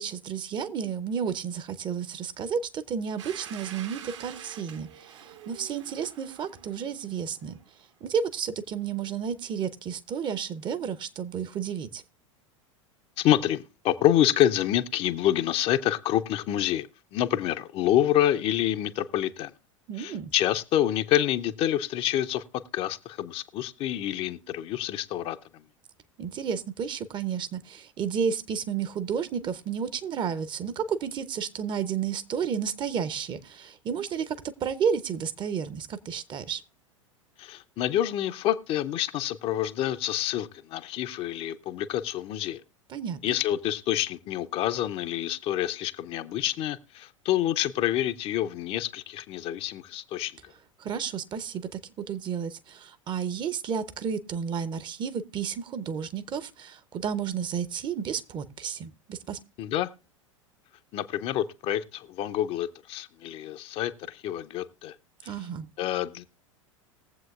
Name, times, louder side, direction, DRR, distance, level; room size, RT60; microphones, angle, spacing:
voice 1, 0.0-7.6 8.0-12.0 19.9-20.3 26.2-36.6 42.9-43.2 50.8-51.8 52.1-59.4 65.2-65.7, right 7 dB, 30° right, 0.8 m, -32 dB
Domestic sounds home sounds, 3.2-7.8, right 9 dB, 65° right, 1.3 m, -46 dB
voice 2, 13.2-19.5 20.0-22.4 22.7-25.6 37.4-42.6 43.2-50.5 59.6-59.9 60.9-64.9 65.2-65.3 65.8-66.2, left 12 dB, 35° left, 0.6 m, -27 dB
20.5 x 7.6 x 2.4 m
figure-of-eight pair, 85°, 17 cm